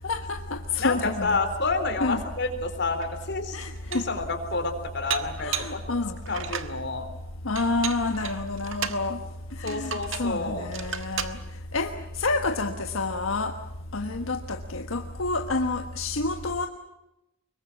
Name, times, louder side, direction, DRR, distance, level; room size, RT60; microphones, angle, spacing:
voice 1, 0.1-1.4 2.0-2.2 3.5-4.0 5.4-6.2 7.4-9.2 9.6-11.4 11.7-13.5 13.9-16.7, left 3 dB, 85° left, 5 dB, 1.4 m, -28 dB
voice 2, 0.8-3.6 3.9-5.8 6.3-7.0 9.6-10.7, left 3 dB, 60° left, 7 dB, 4.0 m, -29 dB
Dishes pots and pans, 3.0-3.1 3.6-4.2 5.1-5.8 6.3-6.8 7.6-9.0 9.7-10.3 10.7-11.4, right 8 dB, 70° right, 1.7 m, -34 dB
25.0 x 22.5 x 7.4 m, 0.91 s
head